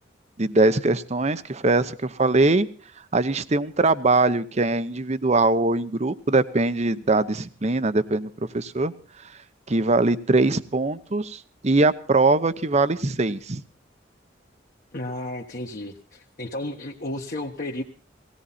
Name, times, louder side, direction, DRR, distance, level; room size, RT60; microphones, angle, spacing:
voice 1, 0.4-2.7 3.1-8.9 9.7-13.6, right 2 dB, 35° right, 14 dB, 0.8 m, -22 dB
voice 2, 14.9-17.8, left 1 dB, 50° left, -1 dB, 1.5 m, -33 dB
18.5 x 17.0 x 4.2 m, 0.40 s
head